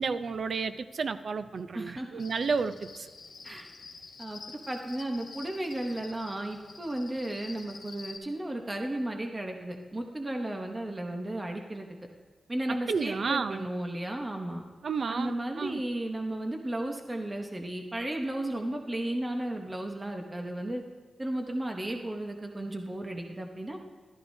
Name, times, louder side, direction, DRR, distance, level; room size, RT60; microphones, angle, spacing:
voice 1, 0.0-3.1 12.9-13.7 14.8-15.8, right 5 dB, 60° right, 11 dB, 0.5 m, -31 dB
voice 2, 1.7-2.2 3.4-3.7 4.2-4.4 4.7-11.9 12.5-14.6 15.1-20.8 21.2-23.8, right 1 dB, 20° right, 3 dB, 0.9 m, -34 dB
Cricket, 2.2-8.2, left 4 dB, 55° left, 1.4 m, -48 dB
14.5 x 13.0 x 2.7 m, 1.5 s
wide cardioid pair, 140°, 0 cm